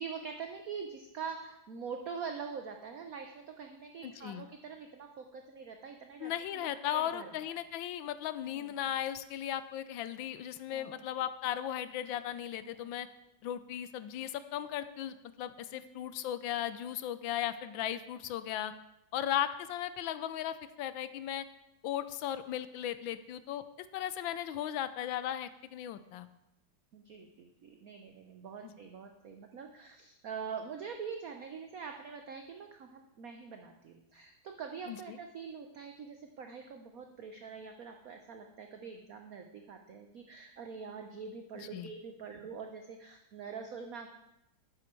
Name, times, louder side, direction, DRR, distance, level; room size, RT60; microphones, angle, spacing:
voice 1, 0.0-7.3 8.5-8.7 10.7-11.1 12.6-12.8 15.7-16.0 26.9-44.1, right 6 dB, 60° right, 5 dB, 1.0 m, -44 dB
voice 2, 4.0-4.4 6.2-13.1 13.4-18.7 19.1-21.5 21.8-23.6 23.9-26.3 28.6-28.7 34.9-35.2 41.5-41.9, left 11 dB, 75° left, 13 dB, 1.3 m, -36 dB
11.5 x 9.1 x 4.5 m, 0.87 s
omnidirectional pair, 2.2 m